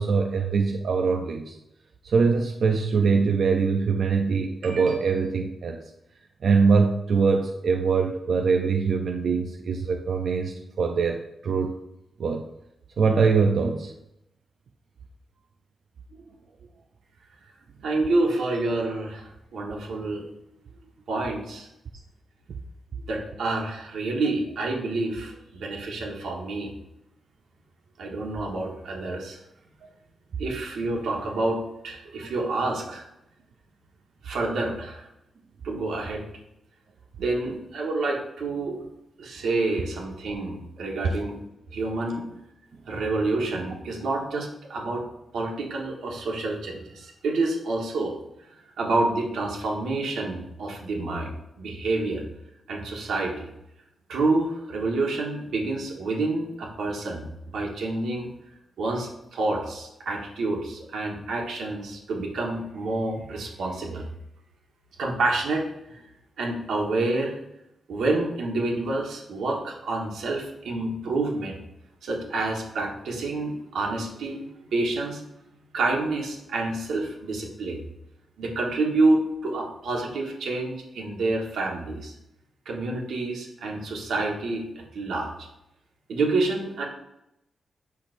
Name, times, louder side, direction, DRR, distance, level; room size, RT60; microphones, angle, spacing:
voice 1, 0.0-1.6 2.0-5.8 6.4-11.7 12.2-12.4 13.0-13.9 16.1-16.2 32.2-32.3 41.0-41.2, right 5 dB, 55° right, 3 dB, 0.4 m, -23 dB
voice 2, 17.8-20.2 21.1-21.7 23.1-26.7 28.0-29.4 30.4-33.1 34.2-35.0 35.6-36.2 37.2-38.8 39.2-41.4 41.7-42.2 42.9-45.0 45.3-48.1 48.8-52.2 52.7-53.5 54.1-57.2 57.5-58.3 58.8-64.1 65.0-65.7 65.9-66.0 66.4-67.4 67.9-71.6 72.0-75.2 75.7-77.8 78.4-82.1 82.6-85.3 86.1-86.9, right 2 dB, 90° right, -1 dB, 1.5 m, -28 dB
8.5 x 5.9 x 2.6 m, 0.85 s
wide cardioid pair, 175°, 0 cm